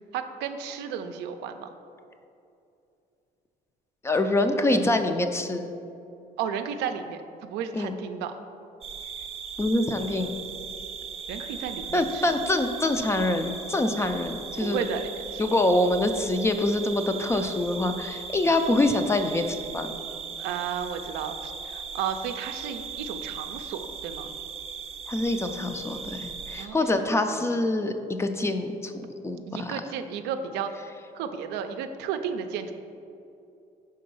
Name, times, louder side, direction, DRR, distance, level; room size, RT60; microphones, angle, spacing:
voice 1, 0.1-1.7 6.4-8.4 11.3-12.2 14.6-15.4 20.4-24.3 26.6-27.1 29.5-30.7 31.2-32.7, right 7 dB, 90° right, 7 dB, 0.4 m, -33 dB
voice 2, 4.0-5.7 7.7-7.9 9.6-10.3 11.9-14.8 15.4-19.9 25.1-29.8, left 2 dB, 15° left, 7 dB, 0.4 m, -25 dB
sound 1, 8.8-26.7, right 6 dB, 35° right, 0.5 m, -38 dB
5.1 x 3.8 x 5.4 m, 2.6 s
cardioid pair, 110°, 17 cm